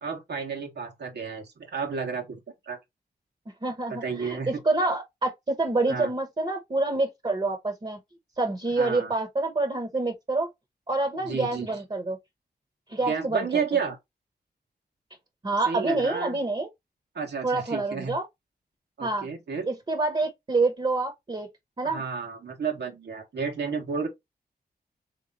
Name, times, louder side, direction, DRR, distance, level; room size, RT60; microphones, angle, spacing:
voice 1, 0.0-2.4 2.6-2.8 4.0-4.6 5.9-6.1 8.8-9.1 11.2-11.7 13.0-14.0 15.7-16.4 17.1-18.1 19.0-19.7 21.8-24.1, right 5 dB, 85° right, 1.5 m, -31 dB
voice 2, 3.6-4.4 4.6-8.0 8.4-10.5 10.9-12.2 12.9-13.6 15.4-16.7 17.4-18.2 19.0-19.3 19.6-21.5 21.8-22.0, right 3 dB, 30° right, 1.0 m, -27 dB
3.5 x 3.1 x 3.9 m
wide cardioid pair, 85°, 17 cm